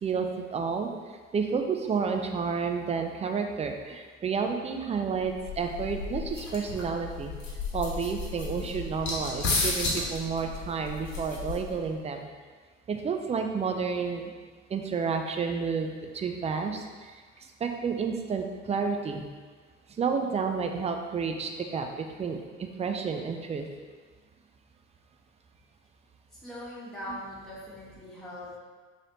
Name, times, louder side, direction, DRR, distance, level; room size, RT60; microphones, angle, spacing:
voice 1, 0.0-0.9 1.3-7.3 7.7-12.3 12.9-14.3 14.7-19.2 20.0-23.7, right 5 dB, 20° right, 4 dB, 0.4 m, -30 dB
sound 1, 5.2-11.9, left 3 dB, 55° left, 1.1 m, -33 dB
voice 2, 26.4-28.6, left 1 dB, ahead, -9 dB, 1.4 m, -41 dB
3.2 x 2.8 x 4.0 m, 1.5 s
hypercardioid pair, 60°, 35 cm